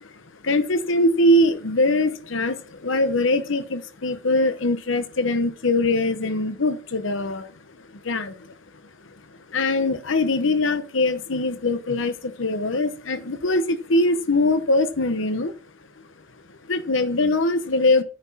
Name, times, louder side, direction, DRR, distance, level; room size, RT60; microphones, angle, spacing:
voice 1, 0.4-7.5 8.0-8.3 9.5-15.5 16.7-18.0, left 2 dB, 70° left, 0.9 m, -22 dB
9.8 x 6.1 x 6.1 m
head